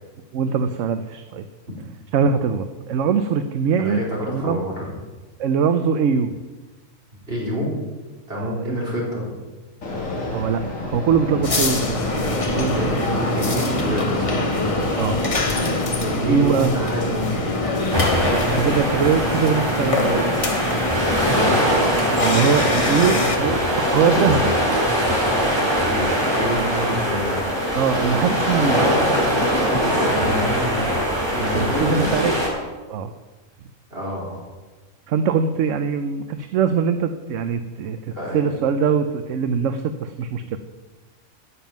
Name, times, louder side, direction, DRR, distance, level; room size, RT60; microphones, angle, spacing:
voice 1, 0.3-1.4 2.1-4.0 4.3-4.6 5.4-6.3 8.3-8.8 10.3-12.0 12.5-12.8 15.0-15.2 16.1-16.7 18.3-20.4 22.2-24.5 27.8-28.8 31.3-32.3 32.9-33.1 35.1-38.0 38.3-40.6, right 6 dB, 75° right, 9 dB, 1.0 m, -22 dB
voice 2, 3.8-4.9 7.3-7.7 8.3-9.3 12.7-14.4 16.0-17.4 21.3-21.6 22.4-23.4 25.8-27.4 29.9-31.1 31.4-32.2 33.9-34.4 38.2-38.4, equal, 50° right, -5 dB, 4.5 m, -28 dB
Fixed-wing aircraft airplane, 9.8-18.9, left 2 dB, 80° left, 2.7 m, -27 dB
sound 1, 11.4-23.4, left 2 dB, 30° left, 0.9 m, -25 dB
sound 2, 17.9-32.5, equal, 20° right, 3.4 m, -21 dB
10.0 x 7.4 x 9.2 m, 1.2 s
omnidirectional pair, 1.4 m